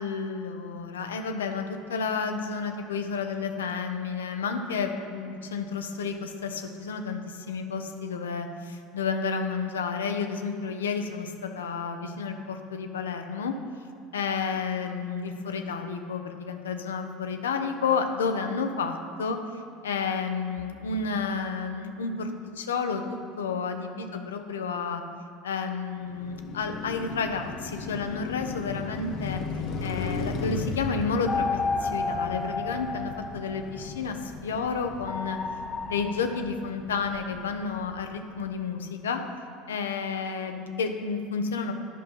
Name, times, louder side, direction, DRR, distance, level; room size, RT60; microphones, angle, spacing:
voice 1, 0.0-13.5 14.1-19.4 19.8-22.3 22.6-23.0 23.4-25.0 25.4-29.4 29.8-31.5 31.8-35.4 35.9-39.2 39.7-41.7, left 5 dB, 85° left, 6 dB, 0.7 m, -31 dB
Car passing by, 26.0-38.2, left 4 dB, 55° left, 0.8 m, -37 dB
sound 1, 31.3-33.9 35.1-36.4, left 4 dB, 25° left, 0.6 m, -31 dB
10.5 x 5.5 x 5.4 m, 2.5 s
hypercardioid pair, 80°, 0 cm